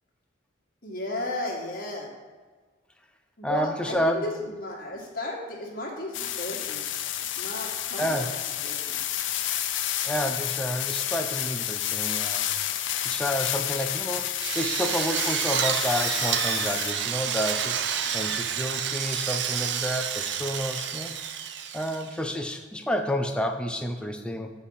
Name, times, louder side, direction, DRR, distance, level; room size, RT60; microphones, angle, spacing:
voice 1, 0.8-2.1 3.4-6.9 7.4-8.3 8.6-9.0, left 1 dB, 45° left, -2 dB, 1.6 m, -34 dB
voice 2, 3.4-4.2 8.0-8.4 10.0-12.5 13.0-21.1 21.7-24.5, equal, 5° left, 4 dB, 0.5 m, -30 dB
sound 1, 6.1-16.9, left 11 dB, 70° left, 0.5 m, -30 dB
Drill, 14.4-22.2, right 8 dB, 60° right, 0.5 m, -29 dB
8.2 x 4.1 x 5.6 m, 1.5 s
head